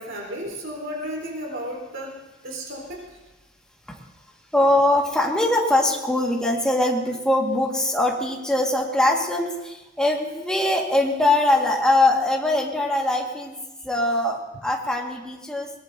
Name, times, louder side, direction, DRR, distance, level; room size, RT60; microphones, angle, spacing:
voice 1, 0.0-2.2 2.4-3.0, equal, 65° right, 0 dB, 4.1 m, -33 dB
voice 2, 4.5-13.6 13.8-15.7, left 1 dB, 5° left, -1 dB, 1.8 m, -22 dB
22.5 x 18.5 x 2.7 m, 1.1 s
head